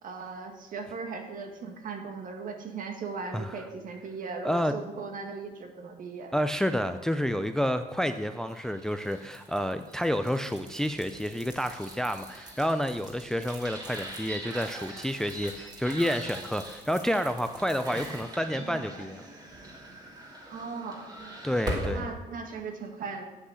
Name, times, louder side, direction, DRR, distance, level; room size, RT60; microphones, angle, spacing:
voice 1, 0.0-6.3 20.5-21.0 21.9-23.3, right 4 dB, 55° right, 5 dB, 1.7 m, -38 dB
voice 2, 3.3-3.6 4.4-4.7 6.3-19.2 21.4-22.0, equal, 5° left, 9 dB, 0.4 m, -29 dB
sound 1, 8.4-22.1, right 1 dB, 25° right, 2.6 m, -41 dB
8.6 x 8.1 x 6.4 m, 1.2 s
cardioid pair, 110°, 17 cm